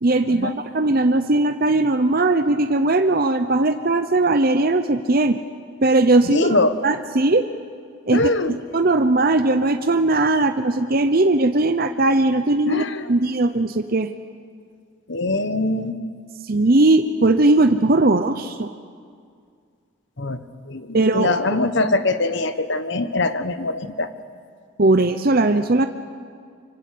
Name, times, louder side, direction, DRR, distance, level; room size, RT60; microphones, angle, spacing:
voice 1, 0.0-5.4 5.8-6.6 6.8-7.5 8.1-8.3 8.7-14.1 16.4-18.7 20.9-21.6 24.8-25.9, right 2 dB, 45° right, 8 dB, 0.7 m, -19 dB
voice 2, 6.2-6.8 8.1-8.6 12.7-13.1 15.1-16.0 20.2-20.4 20.7-24.1, left 2 dB, 55° left, 11 dB, 1.3 m, -22 dB
25.0 x 24.5 x 8.6 m, 2.2 s
head